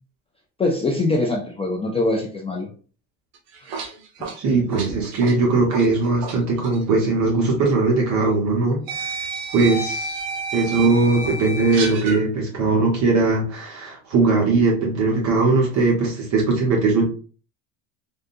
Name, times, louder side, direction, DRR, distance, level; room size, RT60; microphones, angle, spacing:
voice 1, 0.6-2.7 4.2-4.3, left 2 dB, 15° left, 0 dB, 0.3 m, -23 dB
sound 1, 3.3-6.4 6.6-6.8 7.9-8.0 8.9-12.2, right 4 dB, 65° right, 0.9 m, -30 dB
voice 2, 4.4-9.3 9.5-10.2 10.5-17.0, right 3 dB, 45° right, -2 dB, 1.2 m, -20 dB
3.7 x 2.2 x 2.6 m, 0.39 s
cardioid pair, 125°, 38 cm